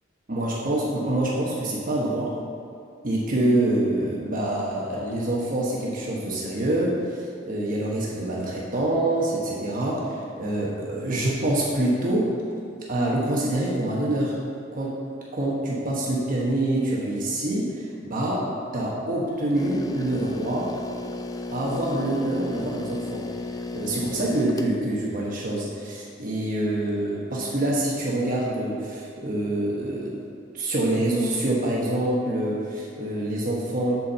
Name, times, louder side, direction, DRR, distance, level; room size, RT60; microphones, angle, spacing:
voice 1, 0.3-2.3 3.0-12.3 12.9-14.4 14.7-15.0 15.3-20.7 21.5-23.3 23.7-30.2 30.5-34.0, right 1 dB, 45° right, -4 dB, 1.1 m, -26 dB
sound 1, 19.5-24.8, left 3 dB, 20° left, 0.4 m, -34 dB
8.3 x 4.3 x 6.7 m, 2.5 s
head